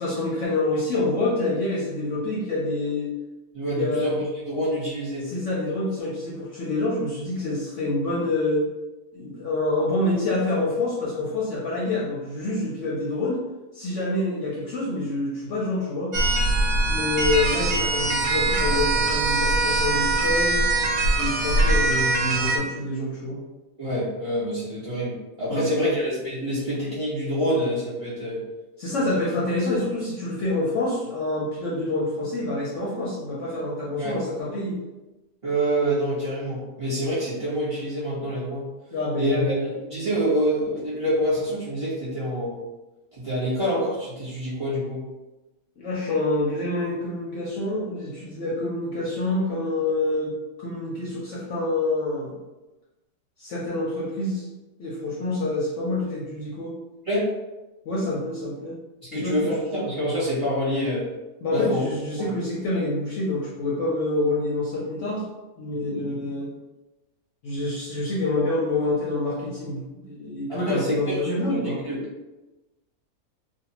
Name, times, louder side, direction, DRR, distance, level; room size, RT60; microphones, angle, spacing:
voice 1, 0.0-3.1 3.7-4.1 5.2-8.6 9.1-13.4 13.7-16.1 16.9-20.6 21.2-23.4 25.5-26.0 28.8-34.8 38.9-39.7 45.8-50.3 50.6-52.4 53.4-54.5 54.8-56.7 57.9-58.8 59.1-59.5 61.4-65.3 65.6-66.5 67.4-71.8, left 2 dB, 65° left, -5 dB, 0.8 m, -27 dB
voice 2, 3.5-5.3 23.8-28.4 34.0-34.2 35.4-38.7 39.2-42.6 43.1-45.1 57.0-57.3 59.1-61.1 61.5-61.8 62.2-62.3 70.5-71.3 71.6-72.0, equal, 25° right, -10 dB, 0.9 m, -26 dB
sound 1, 16.1-22.6, right 2 dB, 85° right, 1.1 m, -22 dB
2.6 x 2.2 x 2.8 m, 1.1 s
omnidirectional pair, 1.6 m